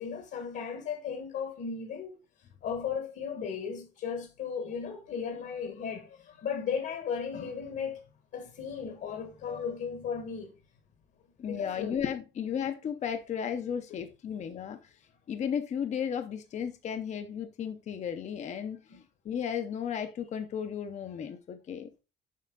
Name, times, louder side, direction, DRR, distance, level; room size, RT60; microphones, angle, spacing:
voice 1, 0.0-2.2 2.6-8.0 8.3-10.5 11.4-11.9, left 6 dB, 65° left, 1.4 m, -36 dB
voice 2, 11.4-14.9 15.3-21.9, left 8 dB, 40° left, 0.6 m, -34 dB
7.5 x 5.5 x 3.8 m
cardioid pair, 165°, 19 cm